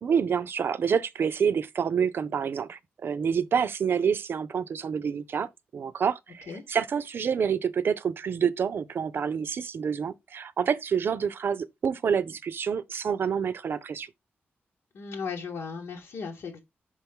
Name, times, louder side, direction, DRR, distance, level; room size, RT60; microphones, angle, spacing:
voice 1, 0.0-14.1, right 7 dB, 60° right, 0.6 m, -28 dB
voice 2, 14.9-16.6, left 5 dB, 90° left, 1.3 m, -36 dB
6.2 x 4.6 x 3.5 m
wide cardioid pair, 150°, 4 cm